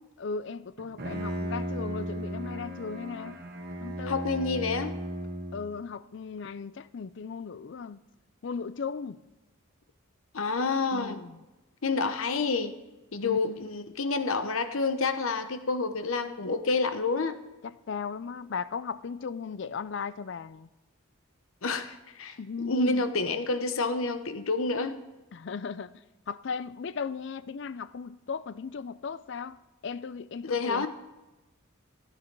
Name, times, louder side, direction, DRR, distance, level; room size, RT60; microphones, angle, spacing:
voice 1, 0.2-3.4 3.8-4.2 5.5-8.0 8.4-9.2 10.9-11.4 13.2-13.7 17.6-20.7 22.4-23.0 25.3-25.9 26.3-29.6 29.8-30.9, left 5 dB, 55° left, 0.4 m, -37 dB
Bowed string instrument, 0.8-5.9, equal, 45° right, 1.3 m, -36 dB
voice 2, 4.1-5.0 10.3-11.2 11.8-12.8 13.1-17.4 21.6-25.0 30.4-30.9, left 3 dB, 75° left, 0.9 m, -28 dB
15.5 x 9.7 x 4.6 m
head